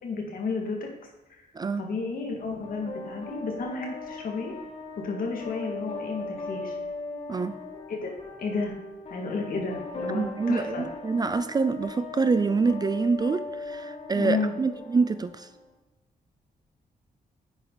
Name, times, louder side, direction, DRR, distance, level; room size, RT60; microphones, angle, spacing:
voice 1, 0.0-0.9 1.3-1.4 1.8-4.5 5.0-6.8 7.9-8.1 8.4-8.8 9.1-10.8 14.1-14.5, left 4 dB, 65° left, 1 dB, 2.3 m, -32 dB
sound 1, 2.6-15.6, left 3 dB, 45° left, 3.2 m, -39 dB
voice 2, 10.1-15.5, right 4 dB, 25° right, 12 dB, 0.4 m, -26 dB
10.5 x 8.9 x 4.1 m, 1.1 s
wide cardioid pair, 160°, 16 cm